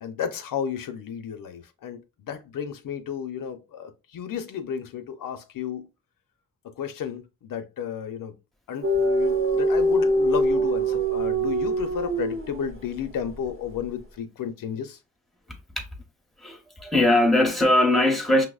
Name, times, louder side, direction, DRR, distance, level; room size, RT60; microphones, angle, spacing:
voice 1, 0.0-5.9 6.8-8.3 8.7-15.0, left 8 dB, 80° left, 0.6 m, -33 dB
sound 1, 8.8-12.9, right 1 dB, 40° right, 0.8 m, -23 dB
voice 2, 16.4-18.5, left 1 dB, ahead, 0.7 m, -20 dB
5.6 x 2.0 x 2.3 m
wide cardioid pair, 110°, 32 cm